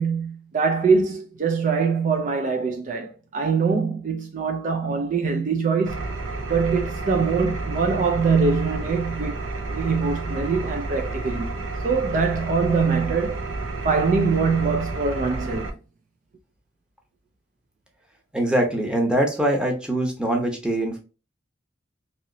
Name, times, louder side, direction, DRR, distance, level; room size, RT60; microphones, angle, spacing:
voice 1, 0.0-6.1 6.5-9.4 9.7-15.8, right 5 dB, 40° right, 0.4 m, -23 dB
Engine, 5.9-15.7, right 3 dB, 85° right, 0.6 m, -30 dB
voice 2, 18.3-21.0, right 1 dB, 5° right, 0.8 m, -23 dB
2.9 x 2.8 x 2.6 m
head